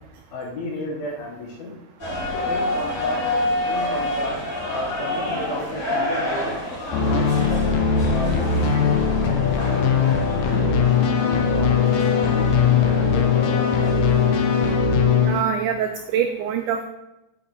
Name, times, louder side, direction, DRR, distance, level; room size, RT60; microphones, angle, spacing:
voice 1, 0.3-1.7 2.3-3.4 3.6-6.6 7.0-11.9 12.3-14.0, left 2 dB, 90° left, 1 dB, 3.1 m, -33 dB
sound 1, 2.0-14.7, left 1 dB, 20° left, 3.0 m, -29 dB
sound 2, 6.9-15.4, left 6 dB, 75° left, 1.7 m, -20 dB
voice 2, 15.3-16.8, right 8 dB, 90° right, 6 dB, 1.7 m, -24 dB
7.9 x 5.7 x 4.2 m, 0.95 s
omnidirectional pair, 4.1 m